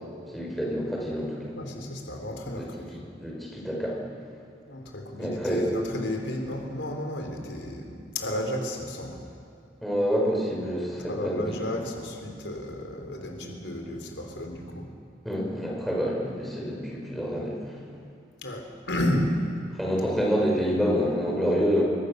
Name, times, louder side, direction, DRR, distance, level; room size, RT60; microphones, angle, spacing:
voice 1, 0.3-1.5 2.6-2.7 2.9-4.0 5.2-5.7 9.8-11.6 15.2-17.6 19.8-21.8, equal, ahead, -3 dB, 5.8 m, -27 dB
voice 2, 1.5-2.9 4.7-9.2 11.1-14.9 18.4-19.3, left 1 dB, 85° left, 2 dB, 4.1 m, -32 dB
27.5 x 24.5 x 6.7 m, 2.5 s
head